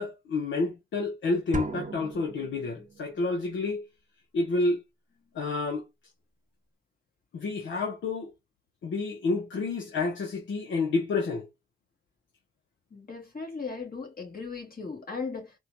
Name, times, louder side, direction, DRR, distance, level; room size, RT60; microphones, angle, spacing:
voice 1, 0.0-3.9 4.3-4.8 5.3-5.8 7.3-8.3 8.8-11.5, left 3 dB, 75° left, 0.8 m, -29 dB
sound 1, 1.5-3.2, right 3 dB, 40° right, 0.7 m, -37 dB
voice 2, 12.9-15.5, left 4 dB, 50° left, 1.8 m, -37 dB
4.3 x 2.3 x 2.6 m
supercardioid pair, 40°, 20 cm